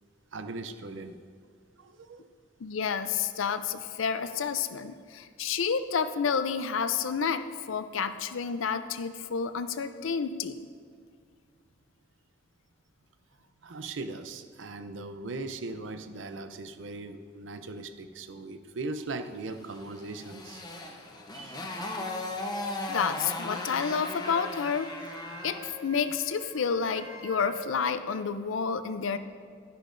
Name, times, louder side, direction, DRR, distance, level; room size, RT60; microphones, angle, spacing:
voice 1, 0.3-1.2 1.8-2.3 13.6-20.6 21.3-21.7, right 3 dB, 65° right, 9 dB, 0.5 m, -39 dB
voice 2, 2.6-7.4 7.7-10.5 22.9-24.9 25.4-29.2, left 6 dB, 75° left, 11 dB, 0.5 m, -30 dB
Motorcycle, 19.7-25.7, left 2 dB, 20° left, 0.7 m, -37 dB
Wind instrument woodwind instrument, 23.5-27.7, equal, 80° right, 1.3 m, -44 dB
12.5 x 10.0 x 2.6 m, 2.1 s
head